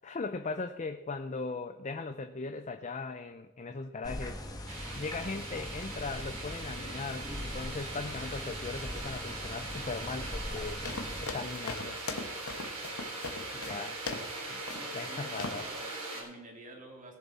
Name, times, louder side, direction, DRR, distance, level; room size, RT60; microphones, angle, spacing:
voice 1, 0.0-4.4 4.9-10.8 11.2-12.0 13.5-13.9 14.5-14.6 14.9-15.7, left 3 dB, 35° left, 8 dB, 0.5 m, -38 dB
sound 1, 4.0-11.3, left 1 dB, 20° left, 1.2 m, -41 dB
sound 2, 4.7-16.2, right 2 dB, 80° right, 3.6 m, -41 dB
sound 3, 10.9-14.4 14.7-15.1 15.4-15.7, left 3 dB, 85° left, 1.3 m, -40 dB
voice 2, 13.5-14.0 14.7-17.2, right 1 dB, 35° right, 1 dB, 2.6 m, -49 dB
19.0 x 7.2 x 4.2 m, 1.1 s
head